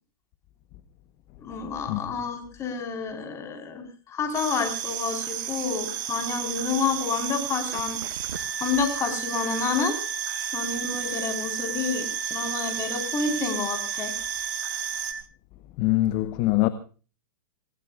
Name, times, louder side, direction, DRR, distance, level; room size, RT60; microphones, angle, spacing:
voice 1, 1.4-8.0 8.6-9.9 10.5-14.1, left 5 dB, 25° left, 4.6 m, -29 dB
sound 1, 4.3-15.1, right 11 dB, 45° right, 4.0 m, -33 dB
sound 2, 7.6-15.2, right 5 dB, 90° right, 1.5 m, -36 dB
voice 2, 15.8-16.7, left 17 dB, 40° left, 1.1 m, -23 dB
27.0 x 17.5 x 2.5 m
hypercardioid pair, 130°, 12 cm